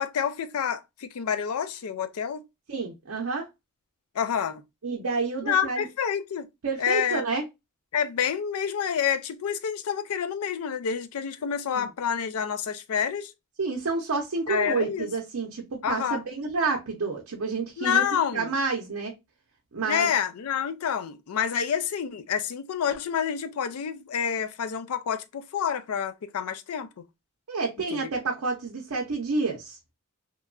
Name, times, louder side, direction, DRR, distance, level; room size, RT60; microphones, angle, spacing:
voice 1, 0.0-2.4 4.2-4.6 5.4-6.5 6.8-7.2 7.9-13.3 14.5-15.1 15.8-16.2 17.8-18.5 19.9-26.9 27.9-28.1, left 8 dB, 75° left, 0.4 m, -28 dB
voice 2, 2.7-3.5 4.8-5.9 6.6-7.4 11.7-11.9 13.6-18.0 18.3-19.1 19.7-20.1 27.5-29.8, right 4 dB, 75° right, 0.6 m, -29 dB
3.0 x 2.2 x 2.3 m
head